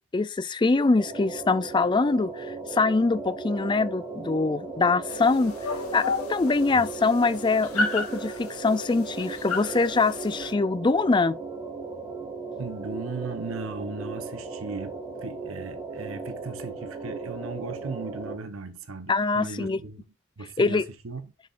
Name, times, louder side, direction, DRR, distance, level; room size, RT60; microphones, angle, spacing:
voice 1, 0.1-5.5 5.9-11.4 19.1-19.8 20.6-20.8, left 3 dB, 20° left, 0.3 m, -24 dB
sound 1, 1.0-18.3, right 4 dB, 15° right, 1.8 m, -37 dB
sound 2, 5.1-10.5, left 3 dB, 80° left, 2.0 m, -33 dB
voice 2, 12.6-14.9 15.2-20.0 20.4-21.2, right 3 dB, 65° right, 0.9 m, -37 dB
6.8 x 6.5 x 2.5 m
head